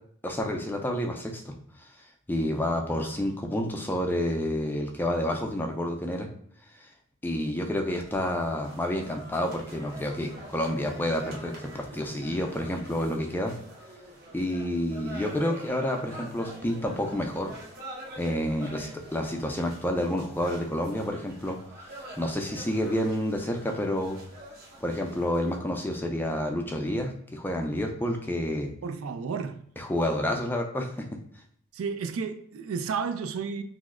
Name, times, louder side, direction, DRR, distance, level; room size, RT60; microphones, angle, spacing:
voice 1, 0.2-1.9 2.3-6.3 6.8-6.9 7.2-13.5 14.3-17.5 18.2-21.6 22.2-24.2 24.8-28.7 29.8-31.0, left 1 dB, 10° left, 0.3 m, -29 dB
sound 1, 8.1-25.6, right 1 dB, 50° right, 0.8 m, -46 dB
voice 2, 28.8-29.7 31.7-33.6, right 5 dB, 85° right, 0.4 m, -32 dB
2.9 x 2.1 x 3.6 m
head